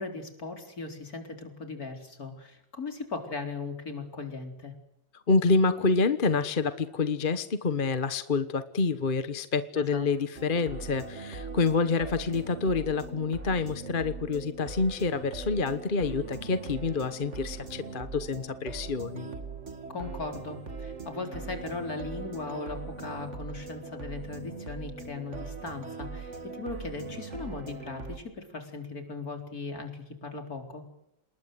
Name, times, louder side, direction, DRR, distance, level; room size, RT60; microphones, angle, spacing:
voice 1, 0.0-4.7 9.8-10.1 19.9-30.8, left 3 dB, 50° left, 5 dB, 4.5 m, -38 dB
voice 2, 5.3-19.3, left 4 dB, 35° left, 12 dB, 1.1 m, -27 dB
sound 1, 10.4-28.2, right 4 dB, 40° right, 2.4 m, -40 dB
27.5 x 20.5 x 7.9 m, 0.82 s
omnidirectional pair, 2.1 m